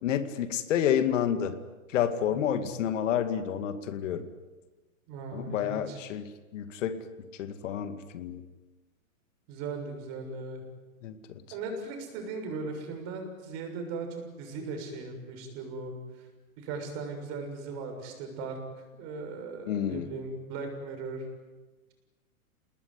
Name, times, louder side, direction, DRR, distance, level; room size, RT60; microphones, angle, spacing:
voice 1, 0.0-1.6 1.9-4.3 5.3-7.0 7.4-8.5 11.0-11.2 19.7-20.1, left 9 dB, 60° left, 10 dB, 2.2 m, -29 dB
voice 2, 2.3-2.7 5.1-6.0 9.5-10.6 11.5-16.3 16.6-21.3, right 4 dB, 35° right, 4 dB, 6.8 m, -38 dB
29.0 x 19.5 x 9.8 m, 1.2 s
hypercardioid pair, 150°, 43 cm